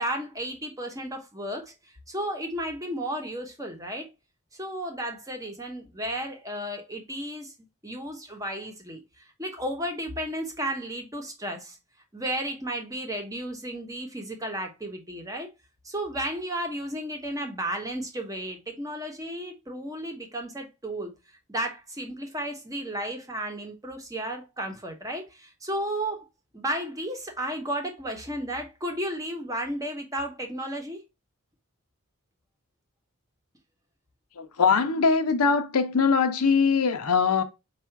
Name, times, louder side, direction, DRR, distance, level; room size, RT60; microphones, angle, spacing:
voice 1, 0.0-4.1 4.5-7.5 7.8-11.8 12.1-15.5 15.8-21.1 21.5-26.3 26.5-31.0, right 1 dB, 15° right, 0.9 m, -33 dB
voice 2, 34.4-37.4, left 5 dB, 85° left, 0.6 m, -22 dB
4.8 x 2.4 x 4.4 m
head